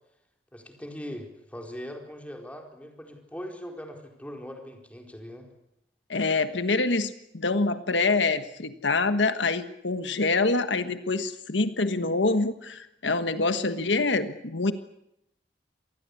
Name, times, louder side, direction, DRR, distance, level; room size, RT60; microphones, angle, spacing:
voice 1, 0.5-5.5, equal, 10° left, 2 dB, 4.3 m, -40 dB
voice 2, 6.1-14.7, left 3 dB, 85° left, 10 dB, 1.4 m, -26 dB
26.5 x 19.5 x 8.5 m, 0.84 s
head